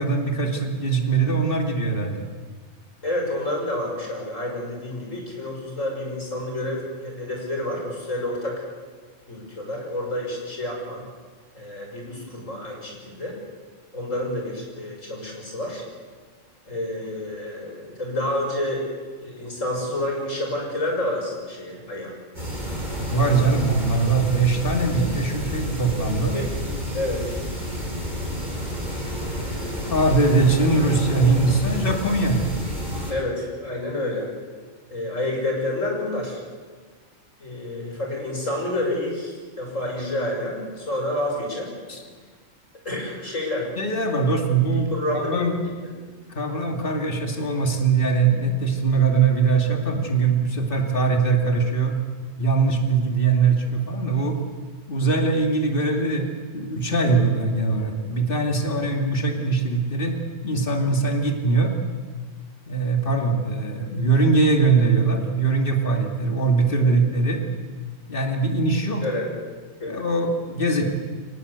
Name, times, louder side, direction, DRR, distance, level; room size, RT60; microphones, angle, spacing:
voice 1, 0.0-2.2 23.1-26.4 29.9-32.5 41.9-42.0 43.8-45.6 46.3-51.9 52.4-54.4 54.9-56.3 56.5-61.7 62.7-67.4 68.1-69.0 69.9-70.8, right 3 dB, 45° left, 3 dB, 2.7 m, -21 dB
voice 2, 3.0-8.6 9.3-11.0 11.5-13.4 13.9-15.8 16.7-18.8 19.2-22.1 23.4-23.6 26.3-26.5 26.9-27.4 29.2-30.5 33.1-34.3 34.9-36.4 37.4-41.8 42.8-43.7 44.7-45.5 45.8-45.9 66.8-67.0 69.0-69.3 69.8-69.9, left 1 dB, 75° left, 0 dB, 6.4 m, -29 dB
sound 1, 22.3-33.1, equal, 35° right, 8.3 m, -30 dB
24.0 x 19.5 x 8.2 m, 1.5 s
omnidirectional pair, 1.3 m